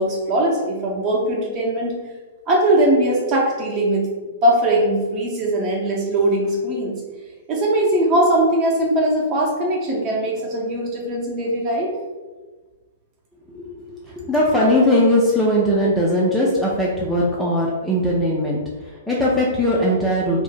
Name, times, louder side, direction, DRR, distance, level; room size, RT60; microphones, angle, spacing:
voice 1, 0.0-1.9 2.5-4.1 4.4-7.0 7.5-11.9, right 1 dB, 30° right, -2 dB, 0.8 m, -20 dB
voice 2, 13.5-20.4, left 1 dB, 5° left, -6 dB, 0.4 m, -20 dB
2.6 x 2.1 x 4.0 m, 1.3 s
figure-of-eight pair, 110°, 0 cm